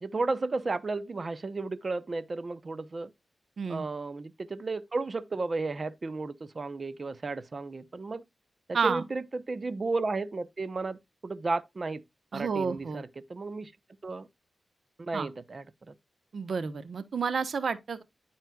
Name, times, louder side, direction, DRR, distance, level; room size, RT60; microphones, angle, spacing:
voice 1, 0.0-3.1 3.7-8.2 8.7-12.0 12.3-13.7 14.0-14.3 15.0-15.9, right 3 dB, 45° right, 0.9 m, -33 dB
voice 2, 3.6-3.9 8.7-9.0 12.3-13.0 15.1-15.3 16.3-18.0, right 5 dB, 70° right, 1.2 m, -30 dB
12.5 x 4.4 x 2.4 m
cardioid pair, 50°, 0 cm